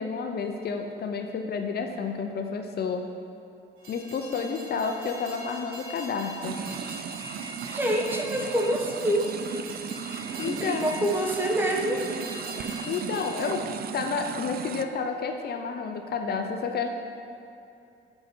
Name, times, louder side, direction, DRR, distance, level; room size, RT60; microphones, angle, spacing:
voice 1, 0.0-3.0 3.9-6.6 10.4-10.9 12.9-13.6 13.9-16.9, left 5 dB, 55° left, 4 dB, 0.6 m, -30 dB
Train, 3.8-13.5, equal, 90° right, 1.9 m, -43 dB
sound 1, 6.4-14.8, right 7 dB, 50° right, 0.4 m, -36 dB
voice 2, 7.7-9.3 10.4-12.1, equal, 10° right, 0 dB, 1.0 m, -26 dB
5.7 x 5.4 x 6.0 m, 2.6 s
cardioid pair, 90°, 20 cm